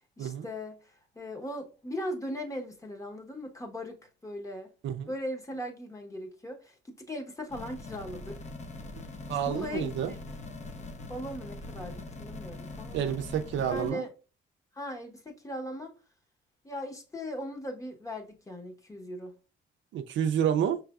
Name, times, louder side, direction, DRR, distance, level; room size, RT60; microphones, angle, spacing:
voice 1, 0.2-4.7 5.1-8.4 9.5-10.2 11.1-13.2 13.7-14.1 14.7-15.9 16.6-19.3, left 1 dB, 15° left, 1.0 m, -39 dB
sound 1, 7.5-13.9, left 2 dB, 35° left, 0.7 m, -42 dB
voice 2, 9.3-10.1 12.9-14.1 19.9-20.8, right 9 dB, 70° right, 0.5 m, -29 dB
5.6 x 3.3 x 2.3 m
cardioid pair, 90°, 20 cm